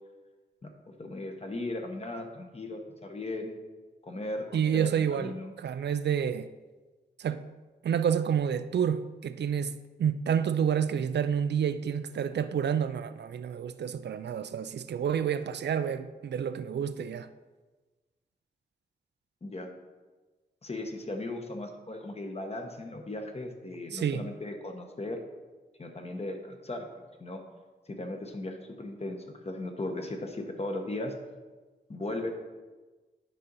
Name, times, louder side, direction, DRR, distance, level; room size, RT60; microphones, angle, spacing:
voice 1, 0.6-3.6 4.0-5.5 19.4-19.7 20.6-25.2 25.8-27.4 27.9-31.1 31.9-32.3, left 2 dB, 35° left, 1.1 m, -37 dB
voice 2, 4.5-5.3 5.6-6.5 7.2-7.4 7.8-17.3 23.9-24.3, right 8 dB, 80° right, 0.4 m, -29 dB
9.9 x 3.9 x 5.5 m
wide cardioid pair, 90°, 18 cm